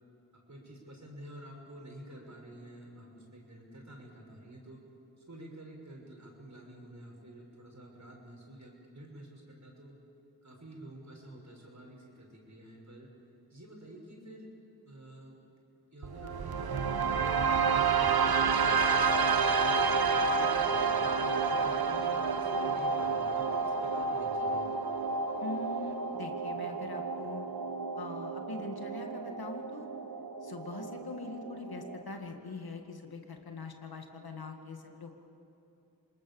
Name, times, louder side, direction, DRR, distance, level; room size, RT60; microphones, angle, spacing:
voice 1, 0.5-4.8 5.3-9.9 10.4-13.1 13.5-14.5 14.8-15.4 15.9-18.8 19.6-24.7, right 1 dB, 45° right, -1 dB, 6.6 m, -49 dB
sound 1, 16.0-32.0, right 5 dB, 70° right, 1.2 m, -30 dB
voice 2, 25.4-27.5 28.0-29.9 30.4-35.2, left 3 dB, 70° left, 4 dB, 2.2 m, -42 dB
26.5 x 19.5 x 7.2 m, 2.7 s
cardioid pair, 40°, 39 cm